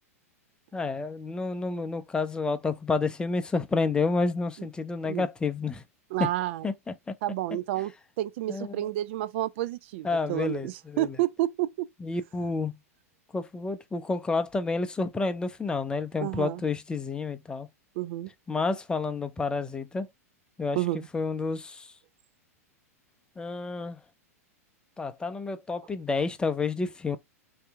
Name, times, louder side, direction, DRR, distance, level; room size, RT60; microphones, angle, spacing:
voice 1, 0.7-5.8 6.2-6.3 6.6-6.7 8.5-8.7 10.0-11.1 12.0-12.7 13.3-17.7 18.5-20.1 20.6-20.8 21.1-21.9 23.4-24.0 25.0-27.2, left 3 dB, 10° left, 0.5 m, -29 dB
voice 2, 6.1-6.7 7.2-11.9 16.2-16.6 18.0-18.3 20.7-21.1, right 15 dB, 50° right, 0.4 m, -30 dB
3.3 x 2.7 x 3.5 m
figure-of-eight pair, 100°, 8 cm